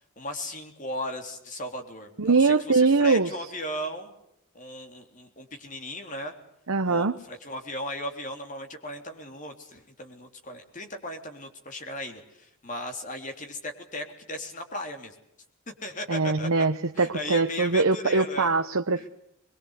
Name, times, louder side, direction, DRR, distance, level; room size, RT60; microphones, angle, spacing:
voice 1, 0.2-4.1 4.5-6.3 6.8-15.1 15.7-16.5 16.9-18.5 19.0-19.1, left 1 dB, 35° left, 4 dB, 3.6 m, -37 dB
voice 2, 2.2-3.3 6.7-7.2 16.1-19.1, right 4 dB, 85° right, 6 dB, 0.9 m, -22 dB
22.5 x 22.5 x 8.3 m, 0.77 s
head